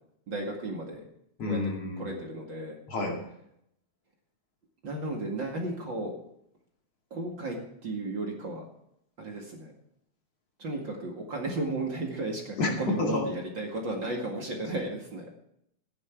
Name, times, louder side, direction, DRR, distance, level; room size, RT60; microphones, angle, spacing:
voice 1, 0.3-1.0 1.5-1.6 2.0-2.8 4.8-6.1 7.1-8.7 9.2-9.7 10.6-15.3, right 2 dB, 40° right, 0 dB, 2.5 m, -34 dB
voice 2, 1.4-2.2 2.9-3.2 12.6-12.7 13.0-13.3, left 2 dB, 55° left, -1 dB, 3.4 m, -29 dB
14.5 x 10.5 x 4.6 m, 0.75 s
omnidirectional pair, 3.4 m